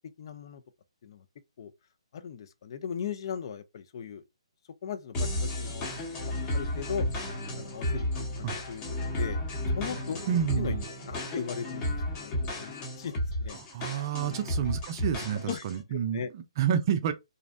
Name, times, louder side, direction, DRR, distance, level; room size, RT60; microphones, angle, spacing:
voice 1, 0.2-0.6 1.0-1.2 1.6-1.7 2.1-4.2 4.8-7.1 7.6-8.1 8.4-8.8 9.2-9.4 9.8-10.3 10.6-10.7 11.0-13.1 13.4-13.6 14.2-14.4 15.5-15.6 15.9-16.3, left 7 dB, 50° left, 0.4 m, -38 dB
sound 1, 5.1-15.8, left 1 dB, 25° left, 0.8 m, -33 dB
voice 2, 10.3-10.8 13.7-17.1, right 9 dB, 40° right, 0.4 m, -29 dB
2.5 x 2.0 x 2.5 m
hypercardioid pair, 145°, 3 cm